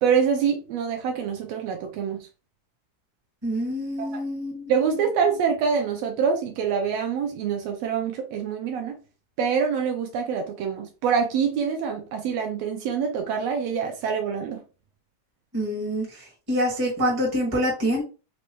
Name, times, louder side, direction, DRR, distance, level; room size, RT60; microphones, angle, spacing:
voice 1, 0.0-2.3 4.0-4.2 4.7-8.9 9.4-14.6, right 6 dB, 75° right, 1.5 m, -25 dB
voice 2, 3.4-5.0 15.5-18.0, equal, 20° right, 0.6 m, -26 dB
5.2 x 2.2 x 3.0 m
omnidirectional pair, 3.6 m